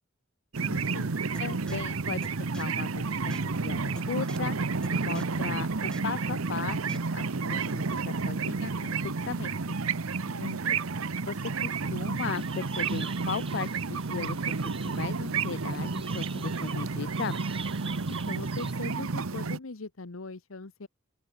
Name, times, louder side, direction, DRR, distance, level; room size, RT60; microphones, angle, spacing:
sound 1, 0.5-19.6, right 4 dB, 90° right, 0.9 m, -31 dB
voice 1, 0.6-1.1 10.2-11.0 18.1-20.9, left 3 dB, 80° left, 1.1 m, -41 dB
sound 2, 1.3-1.4 1.7-1.8 2.2-2.3 2.5-2.6 3.3-3.4 4.0-4.1 4.3-4.4 4.8-4.9 5.1-5.2 5.9-6.0 6.9-7.0, equal, 5° left, 0.5 m, -41 dB
voice 2, 1.4-3.8 4.1-4.6 4.9-9.8 11.3-17.4, left 6 dB, 55° left, 0.4 m, -37 dB
sound 3, 12.2-18.7, right 6 dB, 25° right, 3.1 m, -46 dB
open air
head